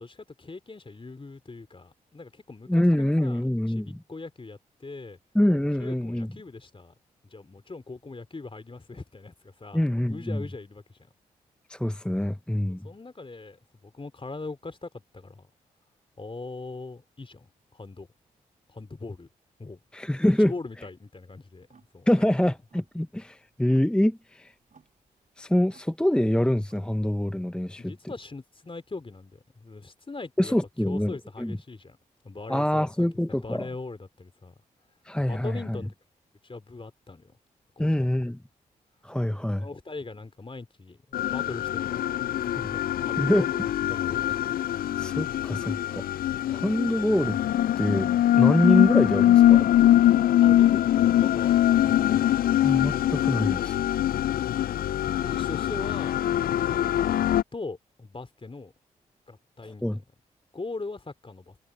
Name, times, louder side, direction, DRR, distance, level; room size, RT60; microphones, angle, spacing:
voice 1, 0.0-5.2 5.8-6.9 7.3-11.1 12.7-15.5 16.2-18.1 18.7-19.3 19.6-19.8 20.2-21.7 21.9-22.1 27.8-30.5 30.8-32.0 32.2-32.9 33.3-34.5 35.3-35.9 36.4-37.4 37.8-38.1 39.2-43.6 43.9-44.6 50.4-52.6 55.0-56.2 56.6-57.2 57.5-58.7 59.3-60.0 60.5-61.6, left 3 dB, 35° left, 3.6 m, -41 dB
voice 2, 2.7-4.0 5.3-6.3 9.7-10.4 11.7-12.9 19.9-20.5 22.1-24.5 25.4-27.9 30.4-31.5 32.5-33.7 35.0-35.6 37.8-38.4 39.0-39.7 43.2-43.5 45.0-46.0 46.5-47.4 47.8-49.9 52.6-53.8 59.8-60.0, left 1 dB, 5° left, 0.8 m, -25 dB
sound 1, 21.6-27.4, right 5 dB, 50° right, 4.0 m, -61 dB
sound 2, 41.1-57.4, left 12 dB, 65° left, 0.4 m, -23 dB
hypercardioid pair, 40°, 16 cm